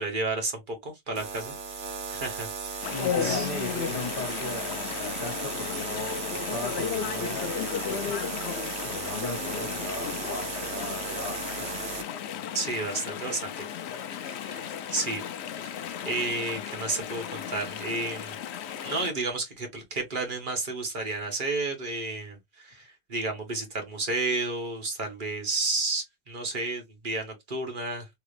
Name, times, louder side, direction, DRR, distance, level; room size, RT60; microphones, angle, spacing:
voice 1, 0.0-2.9 3.2-3.5 12.5-13.6 14.2-15.2 15.6-18.3 18.8-28.1, right 3 dB, 55° right, 1.2 m, -32 dB
sound 1, 1.2-12.0, right 5 dB, 75° right, 1.0 m, -36 dB
Chatter / Stream, 2.8-19.1, left 8 dB, 90° left, 0.8 m, -35 dB
voice 2, 2.9-12.0, left 2 dB, 60° left, 1.5 m, -37 dB
3.4 x 2.4 x 3.1 m
omnidirectional pair, 1.1 m